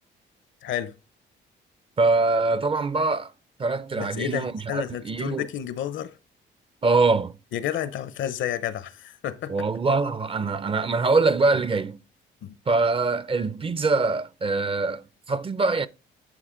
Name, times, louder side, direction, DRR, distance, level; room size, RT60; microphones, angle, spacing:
voice 1, 0.6-0.9 4.0-6.2 7.5-9.6 12.4-12.6, left 11 dB, 75° left, 0.7 m, -31 dB
voice 2, 2.0-3.3 3.6-5.5 6.8-7.4 9.5-12.0 12.7-15.9, right 3 dB, 30° right, 0.5 m, -23 dB
11.0 x 4.2 x 3.8 m
cardioid pair, 90°, 20 cm